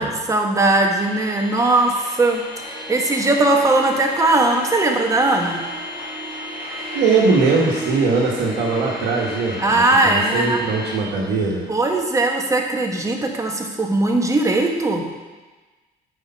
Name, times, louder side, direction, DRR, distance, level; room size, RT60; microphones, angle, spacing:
voice 1, 0.0-5.6 9.6-10.6 11.7-15.1, right 2 dB, 20° right, 2 dB, 1.1 m, -19 dB
sound 1, 1.0-11.0, left 2 dB, 55° left, 2.5 m, -35 dB
Harp, 2.3-2.4 2.6-12.1, right 4 dB, ahead, 1.9 m, -39 dB
voice 2, 6.9-11.6, right 4 dB, 85° right, -2 dB, 1.2 m, -20 dB
8.4 x 4.9 x 5.5 m, 1.3 s
cardioid pair, 110°, 17 cm